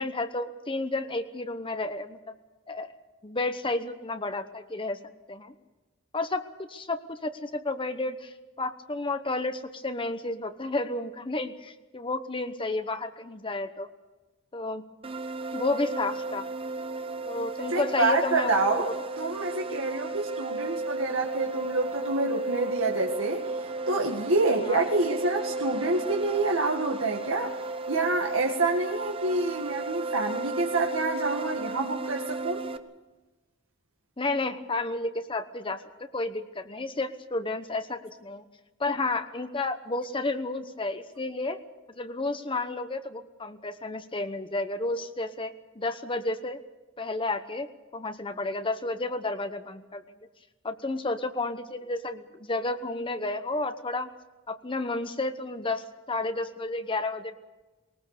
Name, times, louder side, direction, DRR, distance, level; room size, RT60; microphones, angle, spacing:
voice 1, 0.0-2.2 2.7-2.9 3.2-5.0 5.3-5.5 6.1-6.4 6.7-13.9 14.5-14.8 15.5-16.5 17.2-18.8 24.7-24.8 34.2-38.4 38.8-41.6 42.0-46.6 47.0-50.0 50.6-54.1 54.5-57.3, left 2 dB, 25° left, 9 dB, 1.0 m, -31 dB
sound 1, 15.0-32.8, right 3 dB, 25° right, 1.1 m, -34 dB
voice 2, 17.7-27.5 27.9-32.6, right 2 dB, 85° right, 0 dB, 2.1 m, -27 dB
21.0 x 19.5 x 6.8 m, 1.2 s
head